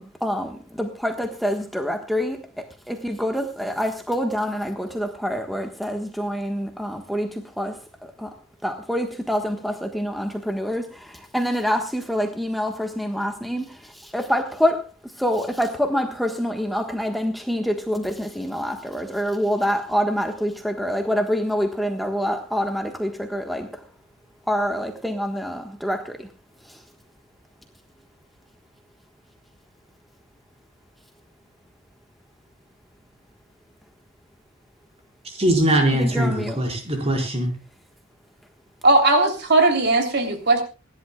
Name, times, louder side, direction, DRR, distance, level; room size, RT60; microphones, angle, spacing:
voice 1, 0.0-8.3 8.6-14.8 15.2-23.8 24.5-26.3 26.6-26.8 35.9-36.6, equal, ahead, 3 dB, 1.4 m, -26 dB
voice 2, 35.2-37.5, right 1 dB, 30° right, 2 dB, 4.9 m, -21 dB
voice 3, 38.8-40.6, right 2 dB, 55° right, 5 dB, 3.2 m, -18 dB
27.0 x 11.5 x 2.3 m, 0.32 s
head